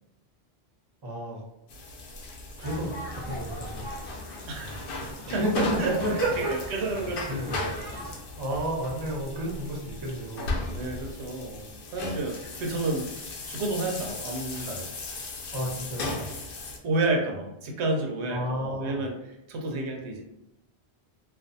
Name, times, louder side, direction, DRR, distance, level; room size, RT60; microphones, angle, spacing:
voice 1, 1.0-1.4 2.6-3.9 5.3-6.5 7.3-7.6 8.4-10.6 15.5-16.3 18.3-19.0, right 1 dB, 25° right, -3 dB, 0.6 m, -31 dB
sound 1, 1.7-16.8, left 3 dB, 65° left, 0.7 m, -37 dB
sound 2, 2.6-8.2, equal, 15° left, 0.3 m, -40 dB
voice 2, 4.5-4.9 5.3-6.2 6.5-7.9 10.7-13.1 13.5-14.9 16.8-20.2, right 2 dB, 85° right, 1 dB, 0.9 m, -31 dB
2.4 x 2.3 x 2.6 m, 0.88 s
omnidirectional pair, 1.1 m